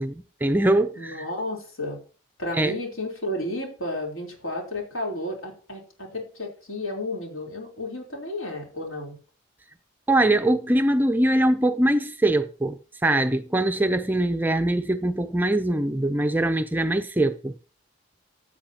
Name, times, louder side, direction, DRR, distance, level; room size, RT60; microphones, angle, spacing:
voice 1, 0.0-1.2 2.6-2.7 10.1-17.5, right 1 dB, 10° right, 0.4 m, -22 dB
voice 2, 1.0-2.0 2.4-9.2, left 1 dB, 75° left, 3.6 m, -32 dB
15.0 x 8.0 x 2.9 m
head